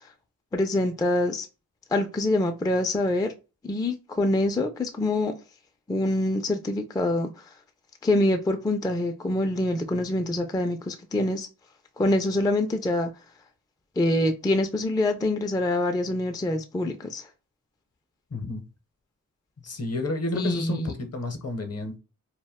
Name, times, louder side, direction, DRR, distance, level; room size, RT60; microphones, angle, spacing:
voice 1, 0.5-1.5 1.9-3.3 3.6-5.3 5.9-7.5 8.0-11.5 12.0-13.1 14.0-17.3 20.3-20.9, left 1 dB, 10° left, 0.3 m, -25 dB
voice 2, 18.3-18.6 19.6-22.0, left 2 dB, 50° left, 0.7 m, -30 dB
2.2 x 2.1 x 3.5 m
wide cardioid pair, 65°, 32 cm